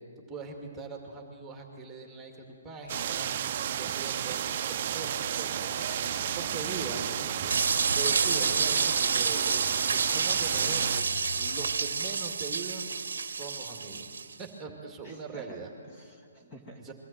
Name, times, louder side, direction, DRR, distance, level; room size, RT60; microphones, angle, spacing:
voice 1, 0.3-13.0 13.3-14.1 14.4-15.7 16.8-16.9, right 4 dB, 10° right, 2 dB, 2.2 m, -42 dB
sound 1, 2.8-9.3 10.4-12.0, left 3 dB, 85° left, 0.9 m, -45 dB
sound 2, 2.9-11.0, right 10 dB, 45° right, 0.5 m, -32 dB
sound 3, 7.5-14.3, right 5 dB, 80° right, 0.8 m, -29 dB
voice 2, 15.0-16.9, right 1 dB, 20° left, 2 dB, 2.0 m, -49 dB
22.5 x 14.0 x 8.8 m, 2.3 s
hypercardioid pair, 150°, 0 cm